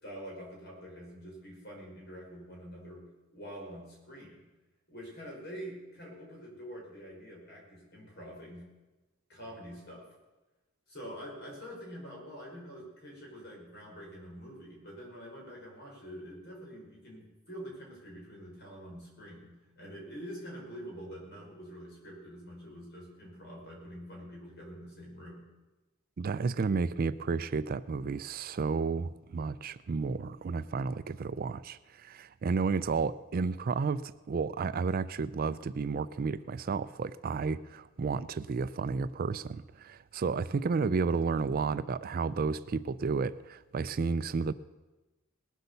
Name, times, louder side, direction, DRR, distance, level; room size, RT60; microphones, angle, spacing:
voice 1, 0.0-3.1 3.3-4.4 4.9-8.7 9.3-10.1 10.9-25.5, equal, 55° left, 5.3 m, -46 dB
voice 2, 26.2-44.5, right 4 dB, 45° right, 0.4 m, -32 dB
19.5 x 8.1 x 6.8 m
head